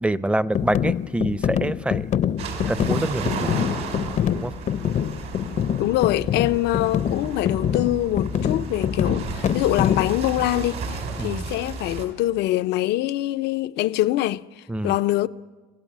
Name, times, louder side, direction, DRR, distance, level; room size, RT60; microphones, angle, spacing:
voice 1, 0.0-2.1 2.7-3.5 4.3-4.5 11.2-11.4 14.7-15.0, right 1 dB, 5° right, 0.6 m, -25 dB
sound 1, 0.5-10.2, left 9 dB, 45° left, 0.6 m, -25 dB
sound 2, 2.4-12.1, right 4 dB, 80° right, 4.9 m, -33 dB
voice 2, 5.8-14.4 14.8-15.3, left 15 dB, 85° left, 0.6 m, -24 dB
25.5 x 17.0 x 7.4 m
cardioid pair, 110°, 17 cm